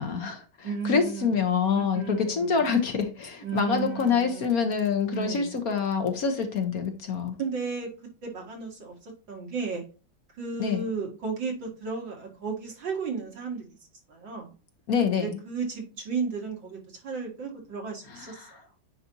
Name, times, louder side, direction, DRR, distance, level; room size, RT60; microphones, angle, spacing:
voice 1, 0.0-7.4 10.6-10.8 14.9-15.4 18.1-18.5, left 6 dB, 55° left, 6 dB, 1.3 m, -26 dB
voice 2, 0.6-2.5 3.4-4.8 5.1-5.6 7.4-7.9 8.2-9.8 10.4-13.7 14.1-14.5 15.2-18.7, right 5 dB, 80° right, 0 dB, 2.7 m, -34 dB
9.5 x 4.2 x 2.8 m, 0.34 s
omnidirectional pair, 2.0 m